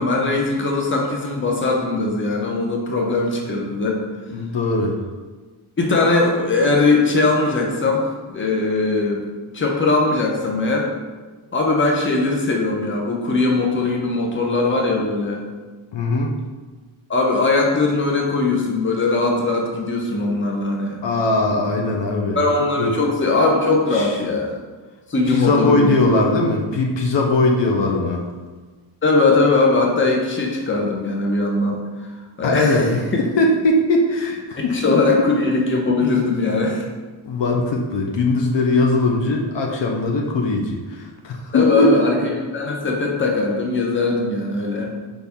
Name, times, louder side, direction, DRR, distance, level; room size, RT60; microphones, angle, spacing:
voice 1, 0.0-4.0 5.8-9.3 9.5-10.9 11.5-15.4 17.1-21.0 22.3-24.6 25.1-26.1 29.0-32.8 34.6-36.9 41.5-44.9, left 3 dB, 25° left, 0 dB, 0.8 m, -20 dB
voice 2, 4.3-5.0 15.9-16.3 21.0-22.4 22.8-22.9 23.9-24.1 25.3-28.3 32.4-33.0 33.4-35.0 37.2-41.9, left 2 dB, 60° left, 1 dB, 0.7 m, -20 dB
4.1 x 3.4 x 3.5 m, 1.3 s
cardioid pair, 85°, 48 cm